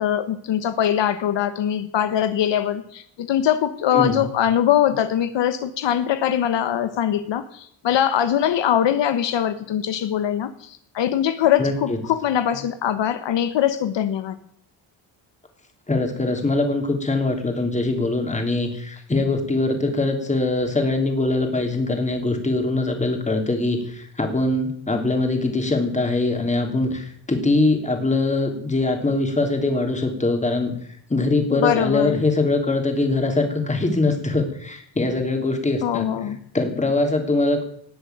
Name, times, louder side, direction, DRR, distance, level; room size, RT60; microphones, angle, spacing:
voice 1, 0.0-14.3 31.5-32.2 35.8-36.4, left 10 dB, 65° left, 10 dB, 1.3 m, -22 dB
voice 2, 3.9-4.2 11.6-12.0 15.9-30.7 31.1-36.1 36.5-37.6, left 2 dB, 15° left, 4 dB, 3.4 m, -22 dB
18.5 x 7.8 x 9.4 m, 0.66 s
cardioid pair, 135°, 46 cm